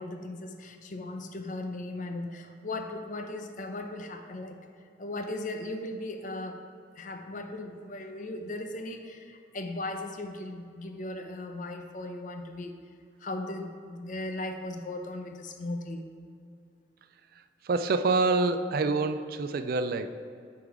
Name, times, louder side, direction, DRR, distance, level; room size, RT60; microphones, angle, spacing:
voice 1, 0.0-4.6 5.0-6.6 7.0-12.7 13.2-16.1, left 2 dB, 45° left, 5 dB, 0.6 m, -37 dB
voice 2, 17.6-20.1, right 3 dB, 50° right, 10 dB, 0.3 m, -26 dB
9.4 x 3.8 x 4.7 m, 2.4 s
head